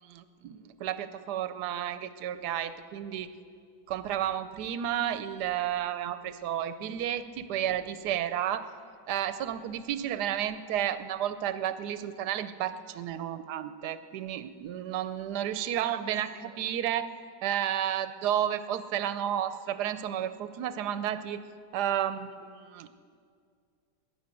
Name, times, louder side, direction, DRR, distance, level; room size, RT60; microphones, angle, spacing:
voice 1, 0.0-3.3 3.9-8.7 9.1-17.1 17.4-21.4 21.7-22.9, right 10 dB, 75° right, 12 dB, 1.2 m, -32 dB
16.5 x 11.0 x 7.7 m, 2.2 s
omnidirectional pair, 1.9 m